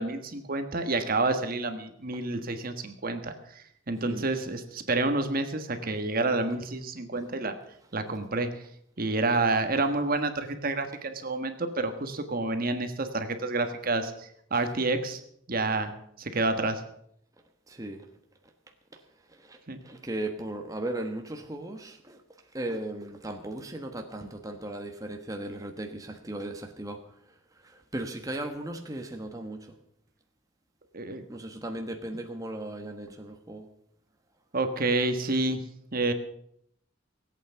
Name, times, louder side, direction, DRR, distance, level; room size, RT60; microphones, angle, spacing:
voice 1, 0.0-7.6 7.9-8.6 9.0-15.2 15.5-15.9 16.2-16.8 19.7-19.8 30.9-31.2 34.5-35.6 35.9-36.1, right 2 dB, 50° right, 8 dB, 1.4 m, -29 dB
voice 2, 17.7-18.0 19.5-19.6 19.8-22.2 22.5-27.0 27.9-29.6 31.3-33.6, right 1 dB, 20° right, 4 dB, 1.2 m, -36 dB
17.5 x 8.7 x 6.9 m, 0.71 s
head